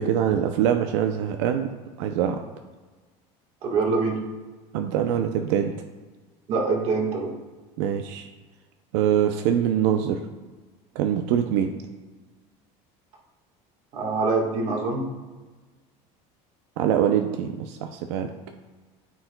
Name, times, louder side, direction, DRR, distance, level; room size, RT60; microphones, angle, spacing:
voice 1, 0.0-1.7 2.0-2.4 4.7-5.7 7.8-8.3 8.9-10.2 11.0-11.7 16.8-18.3, right 9 dB, 85° right, 6 dB, 0.5 m, -23 dB
voice 2, 3.6-4.2 6.5-7.3 13.9-15.1, right 4 dB, 45° right, -1 dB, 1.5 m, -24 dB
13.0 x 4.5 x 2.2 m, 1.3 s
cardioid pair, 160°, 15 cm